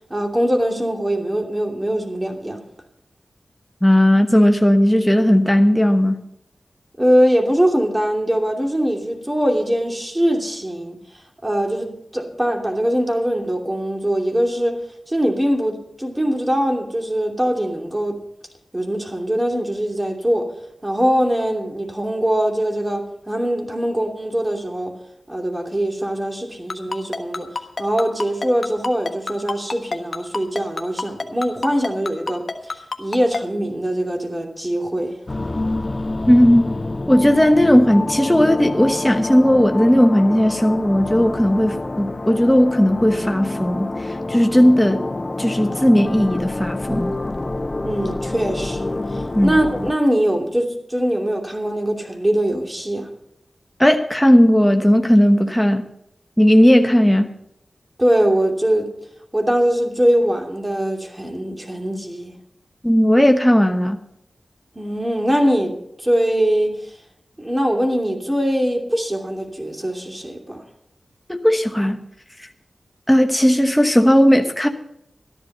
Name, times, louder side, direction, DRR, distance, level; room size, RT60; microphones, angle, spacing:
voice 1, 0.1-2.6 7.0-11.0 11.4-14.7 15.1-18.2 18.7-20.5 20.8-24.9 25.3-27.5 27.8-35.1 47.8-53.1 58.0-58.9 59.3-62.3 64.7-66.8 67.4-70.6, equal, 20° right, 2.8 m, -22 dB
voice 2, 3.8-6.3 36.3-36.8 37.1-45.1 45.4-47.1 49.3-49.5 53.8-55.9 56.4-57.3 62.8-64.0 71.3-72.1 72.4-72.5 73.1-74.7, equal, 10° left, 1.1 m, -16 dB
Ringtone, 26.7-33.4, left 3 dB, 55° left, 1.2 m, -26 dB
sound 1, 35.3-49.9, left 2 dB, 40° left, 0.6 m, -27 dB
13.5 x 11.0 x 5.6 m
cardioid pair, 45°, 0 cm